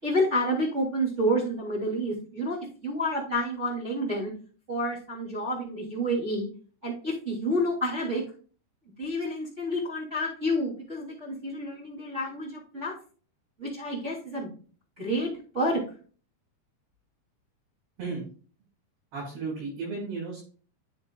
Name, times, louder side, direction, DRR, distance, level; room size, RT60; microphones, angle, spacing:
voice 1, 0.0-2.6 2.8-4.3 4.7-6.5 6.8-8.2 9.0-12.9 13.6-14.5 15.0-15.8, equal, 20° right, -5 dB, 3.1 m, -29 dB
voice 2, 19.1-20.4, right 4 dB, 75° right, -8 dB, 6.7 m, -34 dB
9.9 x 7.3 x 2.4 m, 0.39 s
omnidirectional pair, 4.5 m